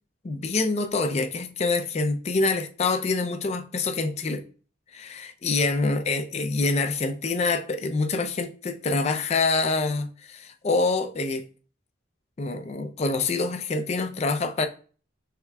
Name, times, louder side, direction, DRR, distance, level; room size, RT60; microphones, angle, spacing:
voice 1, 0.2-4.5 4.9-11.4 12.4-14.7, left 3 dB, 35° left, 0.4 m, -26 dB
5.7 x 3.2 x 2.2 m
head